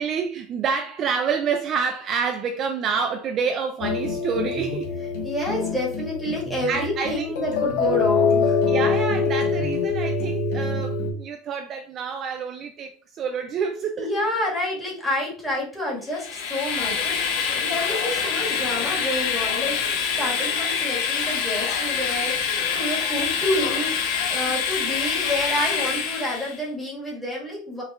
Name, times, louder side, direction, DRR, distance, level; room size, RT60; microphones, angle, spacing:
voice 1, 0.0-4.9 6.7-7.3 8.7-14.1, right 6 dB, 30° right, 0.4 m, -28 dB
sound 1, 3.8-11.1, left 4 dB, 85° left, 1.3 m, -24 dB
voice 2, 5.2-8.6 14.0-27.8, left 1 dB, 5° left, 1.7 m, -29 dB
Train, 16.1-26.6, left 6 dB, 70° left, 0.9 m, -25 dB
5.2 x 3.3 x 2.4 m
supercardioid pair, 160°, 0 cm